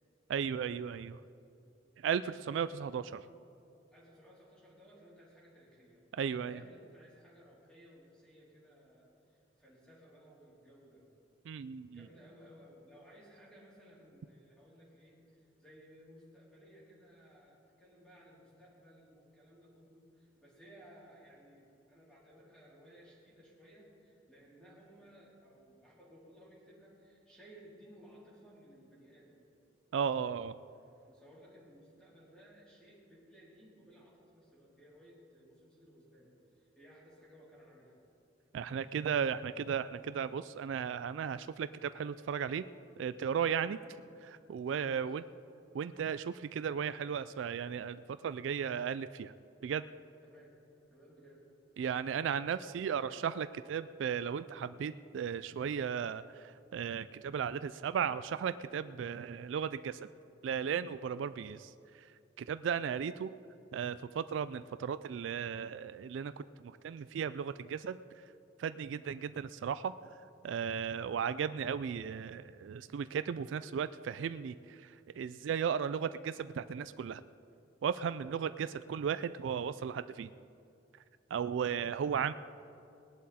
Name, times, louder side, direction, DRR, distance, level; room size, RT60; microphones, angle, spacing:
voice 1, 0.3-1.2 2.0-3.2 6.2-6.6 11.5-12.0 29.9-30.5 38.5-42.6 43.0-43.8 44.5-45.2 45.7-49.3 49.6-49.8 51.8-60.1 60.4-61.7 62.4-63.3 63.7-68.0 68.6-69.9 70.4-77.2 77.8-80.3 81.3-82.3, right 7 dB, 80° right, 13 dB, 0.3 m, -35 dB
voice 2, 3.7-11.0 11.9-29.4 31.1-38.0 43.8-44.0 44.8-45.1 50.2-50.5 50.9-51.4 52.1-53.0 68.9-69.1, equal, 5° left, -7 dB, 3.5 m, -59 dB
19.0 x 11.5 x 4.2 m, 2.6 s
head